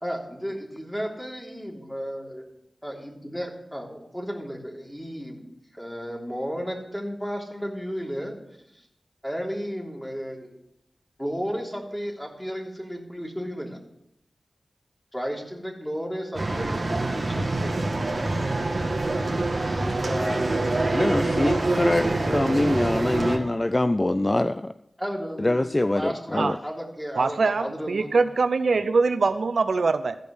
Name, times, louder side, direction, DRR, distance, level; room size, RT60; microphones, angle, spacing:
voice 1, 0.0-2.5 2.8-5.4 5.7-8.4 8.7-8.8 9.2-10.5 11.2-13.8 15.1-18.0 20.0-20.7 25.0-28.2, equal, 5° left, -1 dB, 3.2 m, -33 dB
sound 1, 16.3-23.4, right 2 dB, 50° right, 1.9 m, -25 dB
voice 2, 21.0-24.7 25.4-26.6, left 1 dB, 30° left, 12 dB, 0.4 m, -24 dB
voice 3, 27.1-30.2, right 4 dB, 80° right, 10 dB, 0.6 m, -23 dB
14.5 x 5.2 x 8.0 m, 0.79 s
cardioid pair, 45°, 0 cm